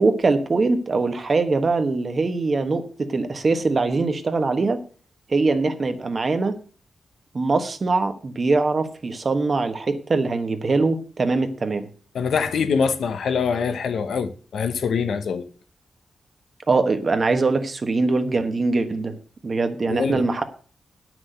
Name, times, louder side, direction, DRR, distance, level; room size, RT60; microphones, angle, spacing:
voice 1, 0.0-4.8 5.3-6.6 7.3-11.9 16.7-19.2 19.4-20.4, right 3 dB, 35° right, 1.2 m, -22 dB
voice 2, 12.1-15.5 19.9-20.2, left 6 dB, 85° left, 1.0 m, -24 dB
9.7 x 6.2 x 7.7 m
wide cardioid pair, 165°, 0 cm